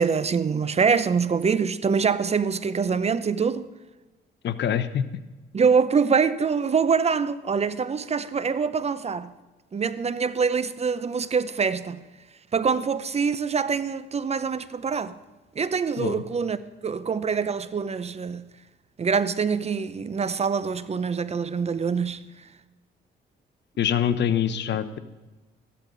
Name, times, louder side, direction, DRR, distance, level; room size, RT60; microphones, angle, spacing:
voice 1, 0.0-3.7 5.5-9.3 9.7-12.0 12.5-15.2 15.6-16.6 16.8-18.5 19.0-22.2, right 5 dB, 30° right, 0.6 m, -24 dB
voice 2, 4.4-5.0 16.0-16.2 23.8-25.0, left 9 dB, 60° left, 0.8 m, -24 dB
14.5 x 11.5 x 4.0 m
cardioid pair, 90°, 20 cm